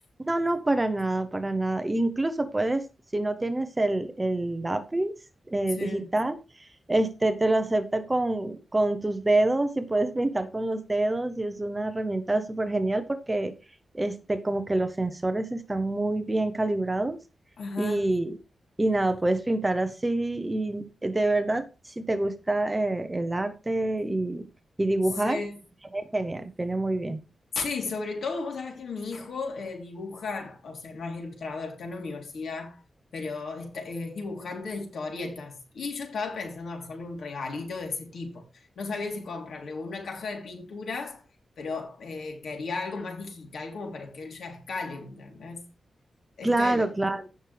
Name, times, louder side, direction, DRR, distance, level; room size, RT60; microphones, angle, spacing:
voice 1, 0.3-2.8 3.1-5.1 5.5-13.5 13.9-17.2 17.8-18.4 18.8-24.5 24.8-25.4 25.9-27.2 46.4-47.3, right 2 dB, 15° right, 0.7 m, -27 dB
voice 2, 5.7-6.1 17.6-18.1 25.2-25.6 27.5-32.8 33.1-41.2 41.6-45.6 46.4-46.9, left 4 dB, 70° left, 3.4 m, -35 dB
16.0 x 6.1 x 3.4 m
wide cardioid pair, 170°, 0 cm